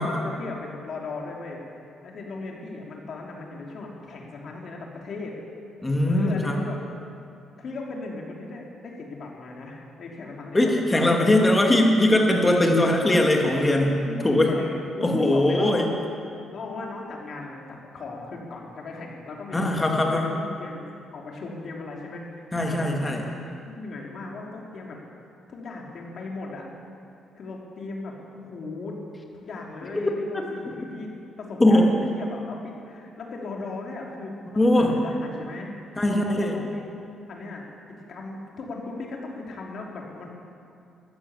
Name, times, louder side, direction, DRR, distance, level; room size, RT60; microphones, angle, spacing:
voice 1, 0.0-5.3 6.1-6.8 7.6-11.6 14.0-16.0 16.3-20.8 21.1-23.4 23.7-25.0 25.5-26.7 27.3-29.0 29.4-31.1 31.4-36.8 37.3-37.6 38.0-40.3, left 3 dB, 60° left, -1 dB, 3.2 m, -37 dB
voice 2, 5.8-6.6 10.5-14.0 14.2-14.5 15.0-15.9 19.5-20.3 22.5-23.2 31.6-31.9 34.6-34.9 36.0-36.6, left 1 dB, 20° left, 1 dB, 2.5 m, -20 dB
13.5 x 11.5 x 8.1 m, 2.5 s
cardioid pair, 90°, 0 cm